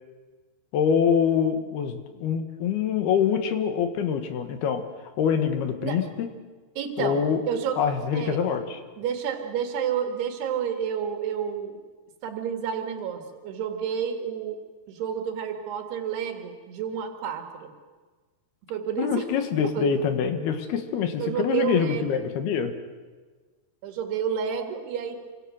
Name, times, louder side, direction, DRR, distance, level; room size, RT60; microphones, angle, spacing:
voice 1, 0.7-4.8 5.2-6.3 7.0-7.4 7.8-8.8 19.0-22.7, left 7 dB, 75° left, 7 dB, 3.6 m, -25 dB
voice 2, 6.8-7.8 8.1-8.4 9.0-11.8 12.2-14.6 14.9-17.7 18.7-19.3 19.7-19.9 21.2-22.3 23.8-25.2, right 8 dB, 85° right, 4 dB, 4.0 m, -30 dB
28.0 x 24.5 x 6.5 m, 1.4 s
omnidirectional pair, 4.6 m